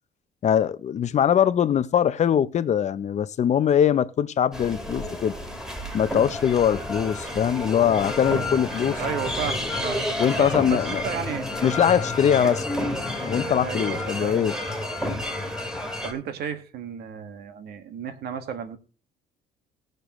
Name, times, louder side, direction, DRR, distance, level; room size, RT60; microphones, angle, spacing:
voice 1, 0.4-5.3 5.9-9.0 10.2-11.0 11.6-12.6 13.2-14.5, left 9 dB, 45° left, 0.7 m, -22 dB
sound 1, 4.5-16.1, left 1 dB, 5° right, 2.5 m, -30 dB
sound 2, 7.8-13.5, left 4 dB, 25° left, 1.3 m, -39 dB
voice 2, 9.0-10.0 10.3-11.5 12.4-12.6 13.6-14.5 16.0-18.8, right 7 dB, 70° right, 1.8 m, -33 dB
19.0 x 6.7 x 3.1 m
cardioid pair, 110°, 17 cm